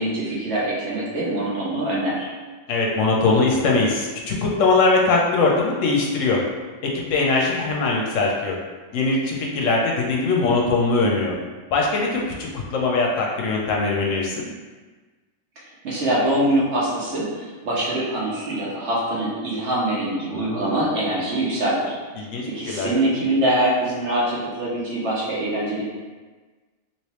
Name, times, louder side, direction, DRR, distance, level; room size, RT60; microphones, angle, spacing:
voice 1, 0.0-2.3 15.8-21.9 22.4-25.9, right 1 dB, 60° right, -6 dB, 1.1 m, -24 dB
voice 2, 2.7-6.4 7.1-8.6 8.9-11.3 11.7-14.5 20.3-20.8 22.2-22.9, left 3 dB, 70° left, -1 dB, 0.9 m, -21 dB
3.1 x 2.9 x 3.0 m, 1.3 s
omnidirectional pair, 1.4 m